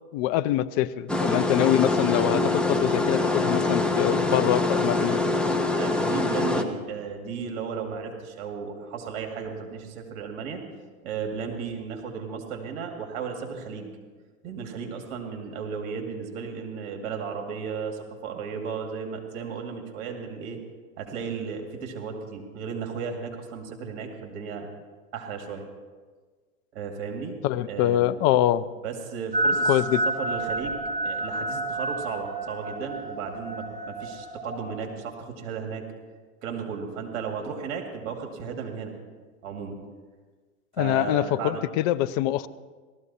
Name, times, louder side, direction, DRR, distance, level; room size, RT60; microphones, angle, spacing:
voice 1, 0.1-5.2 27.4-28.7 29.7-30.0 40.8-42.5, left 13 dB, 35° left, 13 dB, 0.5 m, -24 dB
sound 1, 1.1-6.6, left 2 dB, ahead, 0.7 m, -24 dB
voice 2, 2.7-3.1 4.8-5.2 5.7-10.6 11.0-13.9 14.4-20.6 21.0-24.7 25.1-25.7 26.7-27.4 27.7-28.1 28.8-29.8 30.2-35.8 36.4-38.9 39.4-39.8 40.8-41.6, right 6 dB, 55° right, 3 dB, 2.4 m, -35 dB
sound 2, 29.3-34.7, right 2 dB, 20° right, 4.9 m, -29 dB
17.5 x 13.5 x 4.2 m, 1.4 s
hypercardioid pair, 120°, 42 cm